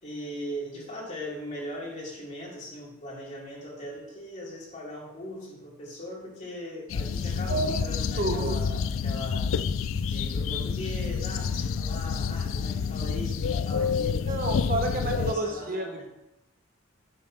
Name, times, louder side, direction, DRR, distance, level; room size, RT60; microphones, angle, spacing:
voice 1, 0.0-9.5 10.0-14.3 14.7-16.1, equal, 40° left, -4 dB, 3.1 m, -39 dB
sound 1, 6.9-15.3, left 6 dB, 75° left, 0.4 m, -28 dB
voice 2, 7.3-7.8 8.2-8.6 14.3-16.1, right 2 dB, 45° right, 3 dB, 1.0 m, -30 dB
11.0 x 4.2 x 5.9 m, 0.93 s
head